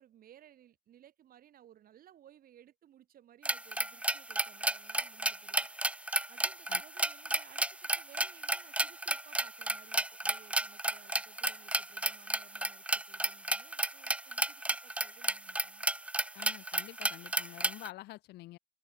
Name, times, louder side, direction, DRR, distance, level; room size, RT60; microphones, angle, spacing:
voice 1, 0.0-5.7 6.3-15.8, right 11 dB, 60° right, 7.0 m, -60 dB
sound 1, 3.4-17.9, right 1 dB, 5° right, 1.0 m, -33 dB
voice 2, 16.3-18.6, left 17 dB, 80° left, 2.0 m, -48 dB
cardioid pair, 110°, 17 cm